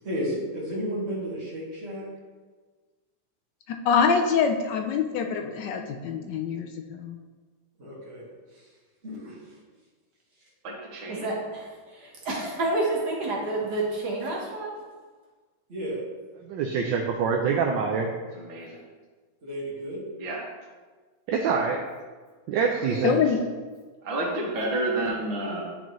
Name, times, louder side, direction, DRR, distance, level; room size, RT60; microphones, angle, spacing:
voice 1, 0.0-2.1 7.8-8.2 8.5-8.7 9.0-9.5 15.7-16.0 19.4-20.0 22.9-23.2, equal, 35° right, -9 dB, 2.0 m, -33 dB
voice 2, 3.7-7.2 23.0-23.4, left 6 dB, 75° left, 4 dB, 1.1 m, -25 dB
voice 3, 10.6-11.3 18.3-18.8 20.2-20.5 24.0-25.6, right 2 dB, 90° right, -2 dB, 2.0 m, -30 dB
voice 4, 11.6-14.7, right 2 dB, 55° right, -4 dB, 1.8 m, -29 dB
voice 5, 16.5-18.1 21.3-21.8 22.5-23.1, right 5 dB, 75° right, 1 dB, 1.3 m, -25 dB
10.5 x 4.2 x 3.1 m, 1.4 s
omnidirectional pair, 2.1 m